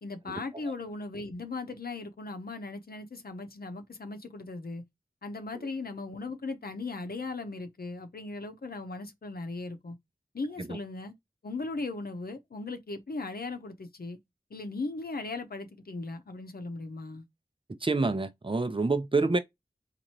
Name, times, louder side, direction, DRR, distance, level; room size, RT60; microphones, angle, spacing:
voice 1, 0.0-4.8 5.2-10.0 10.3-11.1 11.4-14.2 14.5-17.3, left 3 dB, 70° left, 0.7 m, -38 dB
voice 2, 17.8-19.4, right 3 dB, 30° right, 0.6 m, -27 dB
4.2 x 2.5 x 2.9 m
wide cardioid pair, 70°, 16 cm